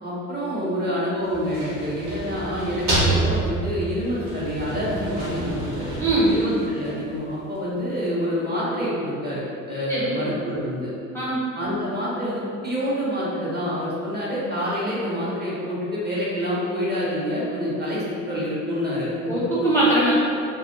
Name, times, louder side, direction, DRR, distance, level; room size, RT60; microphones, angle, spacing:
voice 1, 0.0-5.9 6.3-10.9 11.5-19.4, equal, 25° right, -8 dB, 1.0 m, -27 dB
sound 1, 1.2-7.2, right 2 dB, 60° right, 1.4 m, -28 dB
voice 2, 6.0-6.4 9.9-10.1 11.1-11.4 19.3-20.1, right 1 dB, 5° left, -9 dB, 0.6 m, -21 dB
2.6 x 2.4 x 2.7 m, 2.5 s
hypercardioid pair, 60°, 38 cm